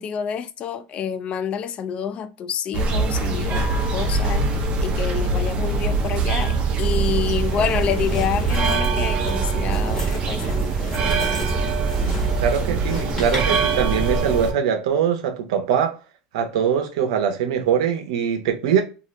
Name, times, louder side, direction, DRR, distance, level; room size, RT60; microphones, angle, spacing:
voice 1, 0.0-11.5, left 8 dB, 40° left, 0.3 m, -28 dB
sound 1, 2.7-14.5, right 4 dB, 35° right, 0.6 m, -22 dB
sound 2, 7.4-13.8, left 1 dB, 20° left, 1.2 m, -36 dB
voice 2, 12.4-15.9 16.3-18.8, right 8 dB, 85° right, 0.6 m, -22 dB
2.7 x 2.4 x 3.1 m
supercardioid pair, 120°, 3 cm